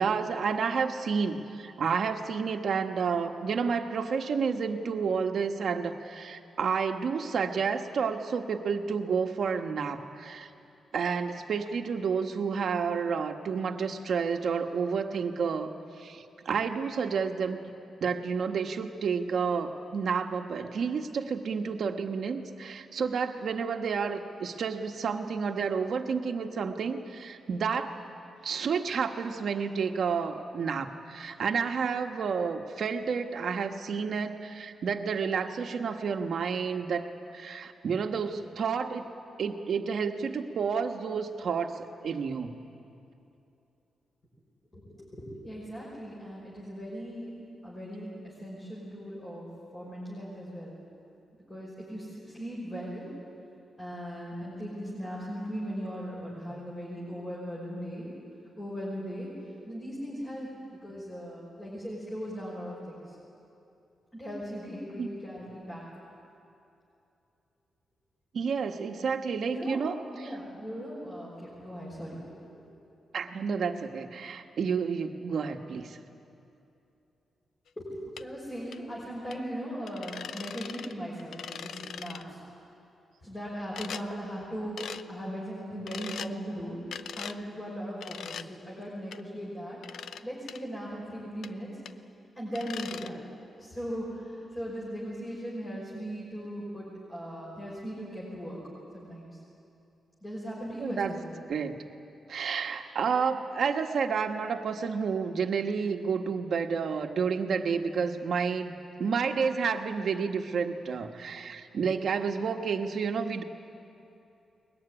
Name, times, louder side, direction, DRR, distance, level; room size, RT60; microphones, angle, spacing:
voice 1, 0.0-10.5 10.9-15.7 16.0-17.6 18.0-28.0 28.4-39.1 39.4-42.5 65.0-65.2 68.3-70.3 73.1-76.0 100.8-101.1 101.5-101.7 102.3-108.7 109.0-113.4, right 6 dB, 55° right, 5 dB, 1.4 m, -30 dB
voice 2, 44.7-47.3 47.6-49.5 49.7-50.8 51.5-53.1 53.8-58.1 58.6-59.3 59.7-63.2 64.1-65.8 69.5-69.8 70.1-72.7 77.8-82.4 83.2-86.8 87.1-91.7 92.3-93.2 93.6-98.6 98.9-99.3 100.2-101.3, equal, 20° left, -6 dB, 5.7 m, -38 dB
sound 1, 78.2-78.3 78.7-78.8 79.3-79.4 79.9-80.9 81.2-82.2 83.8-84.0 84.8-85.0 85.9-86.3 86.9-87.4 88.0-88.5 89.1-89.2 89.8-90.2 90.5-90.6 91.4-91.5 91.9-92.0 92.6-93.1, left 7 dB, 75° left, 0.6 m, -40 dB
22.0 x 20.5 x 10.0 m, 2.7 s
wide cardioid pair, 165°, 0 cm